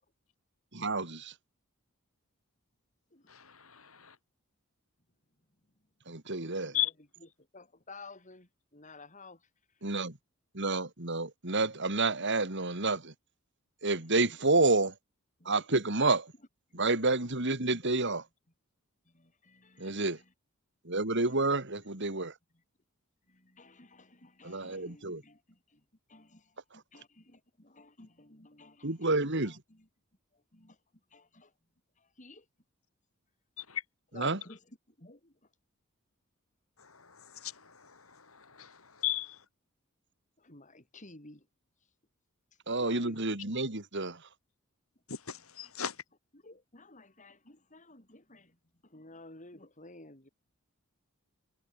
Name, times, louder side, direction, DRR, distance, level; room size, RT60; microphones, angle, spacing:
voice 1, 0.7-1.3 6.1-6.7 9.8-10.1 10.5-13.1 13.8-14.9 15.5-16.3 16.7-18.2 19.8-20.2 20.9-22.3 24.4-25.2 28.8-29.6 34.1-34.4 42.7-44.2, right 3 dB, 55° right, 3.6 m, -29 dB
voice 2, 3.3-4.1 6.7-6.9 33.6-33.8 36.8-39.4 45.1-45.9, left 12 dB, 75° left, 6.7 m, -37 dB
voice 3, 7.5-9.4 15.4-15.6 16.7-16.9 19.1-20.3 21.2-21.3 23.3-25.8 26.1-26.5 26.9-29.2 29.4-29.9 30.5-30.8 31.1-31.5 32.0-32.4 34.1-34.6 35.0-35.3 40.4-41.5 42.8-43.2 46.3-48.6 48.8-50.3, left 2 dB, 35° left, 5.6 m, -53 dB
head